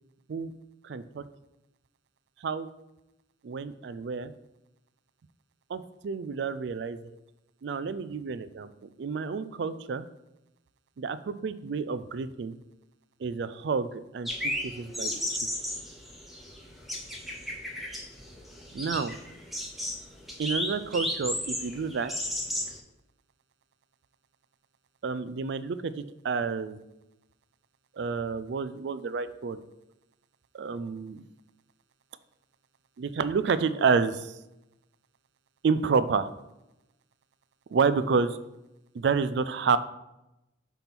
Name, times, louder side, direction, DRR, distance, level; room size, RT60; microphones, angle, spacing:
voice 1, 0.8-1.2 2.4-2.7 3.4-4.3 5.7-7.1 7.6-8.7 9.0-10.0 11.0-12.6 13.2-15.4 18.7-19.1 20.4-22.1 25.0-26.8 28.0-29.6 30.6-31.2 33.0-34.3 35.6-36.3 37.7-38.4 38.9-39.8, right 5 dB, 55° right, 14 dB, 0.3 m, -29 dB
sound 1, 14.3-22.8, left 1 dB, ahead, 0.8 m, -34 dB
5.8 x 3.5 x 5.9 m, 0.93 s
head